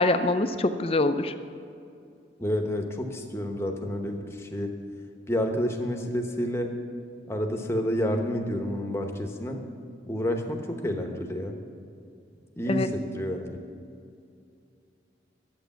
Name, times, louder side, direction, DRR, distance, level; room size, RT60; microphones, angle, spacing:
voice 1, 0.0-1.3 12.7-12.9, left 2 dB, 30° left, 9 dB, 0.5 m, -24 dB
voice 2, 2.4-4.7 5.3-6.7 7.3-9.6 10.1-11.6 12.6-13.6, equal, 15° left, 3 dB, 1.0 m, -29 dB
11.5 x 8.1 x 7.1 m, 2.5 s
head